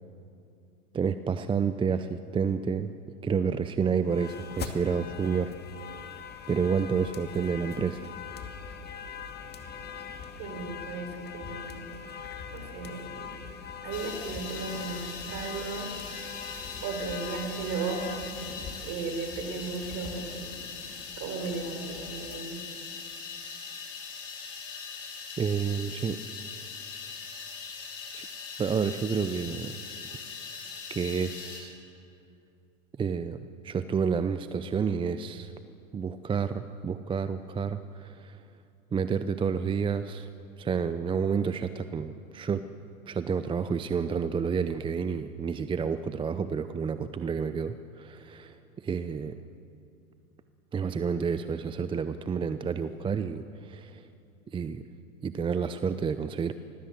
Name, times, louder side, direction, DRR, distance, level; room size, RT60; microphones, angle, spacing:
voice 1, 0.9-2.9 3.2-5.5 6.5-8.1 25.4-26.2 28.1-28.3 28.6-29.7 30.9-31.8 33.0-33.4 33.6-35.5 35.9-38.4 38.9-40.3 40.6-42.6 43.1-49.4 50.7-54.1 54.5-54.8 55.2-56.5, right 6 dB, 15° right, 11 dB, 0.6 m, -29 dB
sound 1, 4.0-22.4, left 6 dB, 25° left, 2.3 m, -42 dB
voice 2, 10.4-12.0 12.5-13.3 13.8-15.9 16.8-18.2 18.8-20.6 21.2-22.6, right 4 dB, 45° right, 5 dB, 5.7 m, -35 dB
sound 2, 13.9-31.6, left 5 dB, 70° left, 6.9 m, -41 dB
25.5 x 19.5 x 7.8 m, 2.6 s
hypercardioid pair, 105°, 39 cm